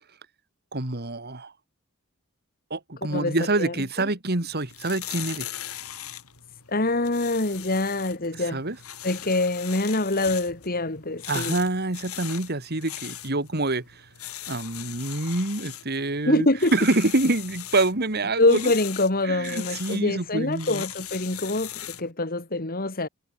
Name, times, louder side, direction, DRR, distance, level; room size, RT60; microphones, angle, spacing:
voice 1, 0.7-1.5 2.7-5.5 8.4-8.8 11.3-14.0 14.5-16.5 16.7-18.7 19.2-20.8, right 2 dB, 45° right, 2.4 m, -26 dB
voice 2, 3.1-3.7 6.7-8.6 9.0-11.5 16.2-16.7 18.4-23.1, left 2 dB, 45° left, 2.5 m, -25 dB
sound 1, 4.5-22.1, left 12 dB, 80° left, 7.1 m, -39 dB
head